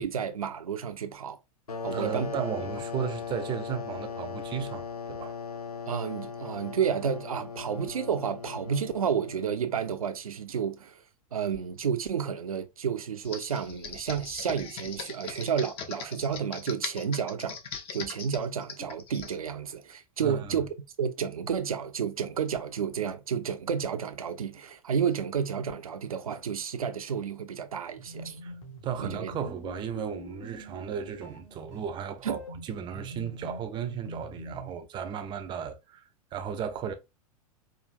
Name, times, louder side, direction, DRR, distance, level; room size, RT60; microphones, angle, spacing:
voice 1, 0.0-1.4 1.8-2.3 5.9-11.0 11.3-17.6 17.9-20.7 21.0-28.4 29.0-29.3 32.2-32.4, right 7 dB, 70° right, 0.6 m, -31 dB
sound 1, 1.7-10.1, left 5 dB, 80° left, 0.6 m, -38 dB
voice 2, 1.9-5.4 20.2-20.6 28.4-28.5 28.8-36.9, right 8 dB, 25° right, 0.6 m, -35 dB
Computer keyboard, 13.2-19.4, left 6 dB, 30° left, 0.7 m, -40 dB
sound 2, 27.9-34.8, equal, 55° left, 1.7 m, -44 dB
4.9 x 2.5 x 2.5 m
figure-of-eight pair, 95°, 19 cm